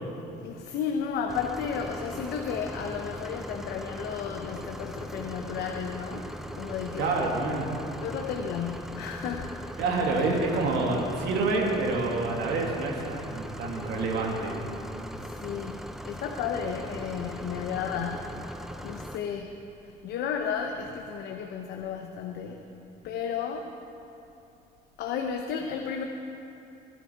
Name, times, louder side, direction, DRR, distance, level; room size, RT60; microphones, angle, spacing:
voice 1, 0.4-7.4 8.0-9.6 15.2-22.7 23.0-23.7 25.0-26.0, left 7 dB, 75° left, 3 dB, 0.9 m, -33 dB
sound 1, 1.3-19.2, equal, ahead, 0.6 m, -39 dB
voice 2, 7.0-7.7 9.8-14.5, right 3 dB, 80° right, 0 dB, 2.6 m, -27 dB
21.5 x 10.5 x 4.7 m, 2.8 s
cardioid pair, 110°, 17 cm